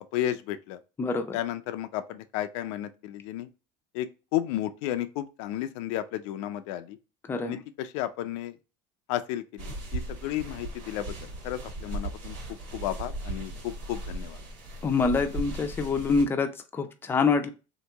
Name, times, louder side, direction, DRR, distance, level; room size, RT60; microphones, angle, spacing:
voice 1, 0.1-0.8 1.3-3.5 3.9-7.0 7.4-8.6 9.1-11.2 11.4-12.4 12.7-14.4, left 13 dB, 85° left, 0.4 m, -33 dB
voice 2, 1.0-1.4 7.3-7.6 14.8-17.5, left 4 dB, 15° left, 0.4 m, -26 dB
sound 1, 9.6-16.2, right 2 dB, 75° right, 1.6 m, -37 dB
2.9 x 2.6 x 3.4 m
cardioid pair, 140°, 15 cm